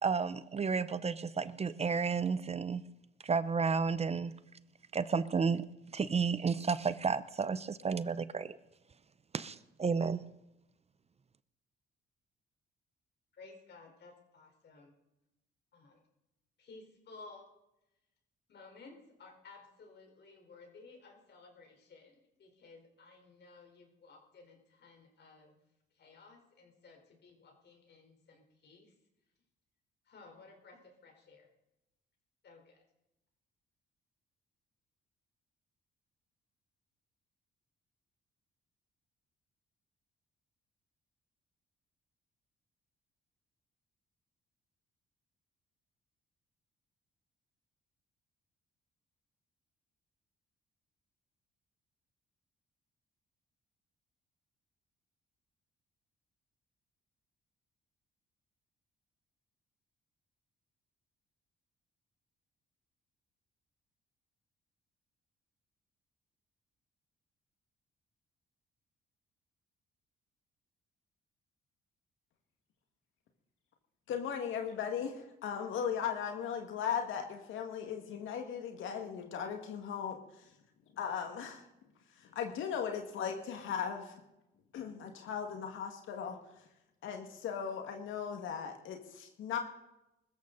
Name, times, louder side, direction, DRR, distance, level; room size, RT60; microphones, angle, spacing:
voice 1, 0.0-2.8 3.2-4.3 4.9-5.6 5.9-8.6 9.3-10.2, right 5 dB, 30° right, 15 dB, 0.7 m, -32 dB
voice 2, 13.3-14.9 15.7-16.0 16.6-17.5 18.5-25.6 25.9-28.9 30.1-31.5 32.4-32.8, left 3 dB, 60° left, 3 dB, 4.3 m, -56 dB
voice 3, 74.1-80.5 80.9-81.6 82.2-84.1 84.7-86.4 87.0-89.6, left 7 dB, 80° left, 4 dB, 2.0 m, -37 dB
21.5 x 14.0 x 4.0 m, 0.92 s
cardioid pair, 90°, 20 cm